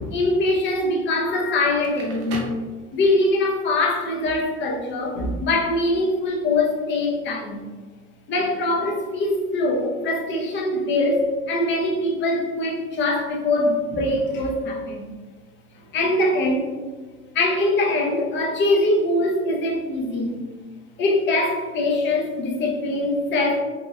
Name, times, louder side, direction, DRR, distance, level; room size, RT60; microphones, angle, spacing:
voice 1, 0.1-2.4 2.9-7.6 8.3-15.1 15.9-16.7 17.3-20.4 21.0-23.6, left 2 dB, 40° left, 0 dB, 0.5 m, -22 dB
Crackle, 1.7-3.4, right 2 dB, 70° right, 0.6 m, -37 dB
2.9 x 2.1 x 2.3 m, 1.4 s
cardioid pair, 150°, 30 cm